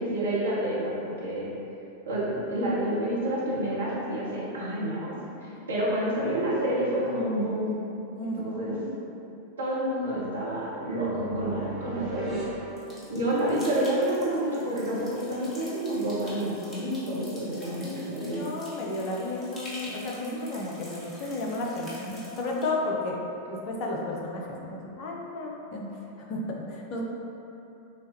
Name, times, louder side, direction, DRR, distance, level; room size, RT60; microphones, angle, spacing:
voice 1, 0.0-1.5 2.1-7.8 8.2-8.9 9.6-12.5 13.1-18.4, right 1 dB, 70° right, -7 dB, 1.1 m, -29 dB
voice 2, 8.2-8.9 17.8-23.2 23.5-27.0, left 2 dB, 40° left, -1 dB, 0.6 m, -33 dB
sound 1, 10.5-13.6, right 3 dB, 15° right, 1.3 m, -39 dB
sound 2, 12.8-22.7, left 1 dB, 20° left, 1.0 m, -47 dB
6.2 x 2.3 x 2.8 m, 3.0 s
figure-of-eight pair, 90°, 0 cm